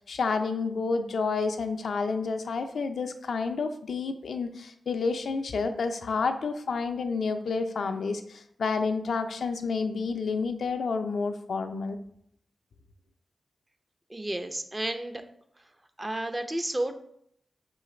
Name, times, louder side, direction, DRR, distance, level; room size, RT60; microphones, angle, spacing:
voice 1, 0.0-12.0, left 4 dB, 80° left, 7 dB, 0.4 m, -29 dB
voice 2, 14.1-15.2 16.0-16.9, right 1 dB, 25° right, 7 dB, 0.5 m, -31 dB
3.8 x 3.2 x 4.2 m, 0.70 s
cardioid pair, 45°, 0 cm